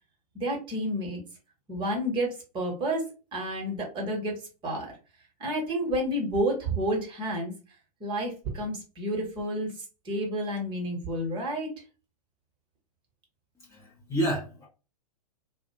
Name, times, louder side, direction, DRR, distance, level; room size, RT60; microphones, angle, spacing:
voice 1, 0.3-1.2 1.7-4.9 5.4-7.5 8.0-9.7 10.0-11.7, right 1 dB, 25° right, 0 dB, 1.0 m, -30 dB
voice 2, 13.7-14.7, right 1 dB, 15° left, -3 dB, 0.7 m, -30 dB
2.4 x 2.0 x 2.8 m, 0.32 s
figure-of-eight pair, 105°, 20 cm